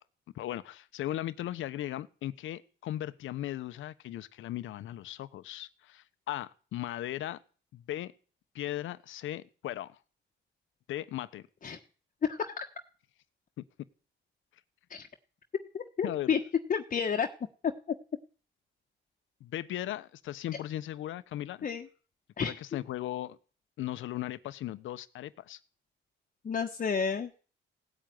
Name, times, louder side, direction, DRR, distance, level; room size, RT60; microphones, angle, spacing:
voice 1, 0.3-7.4 7.7-8.1 8.5-10.0 10.9-11.5 13.6-13.7 16.0-16.3 19.4-21.7 22.4-23.4 23.8-25.6, left 13 dB, 80° left, 14 dB, 1.1 m, -37 dB
voice 2, 12.2-12.6 14.9-15.1 15.7-16.4 16.7-17.3 21.6-21.9 22.4-22.6 26.4-27.3, left 6 dB, 40° left, 4 dB, 1.3 m, -30 dB
17.5 x 8.8 x 9.4 m, 0.39 s
cardioid pair, 90°, 20 cm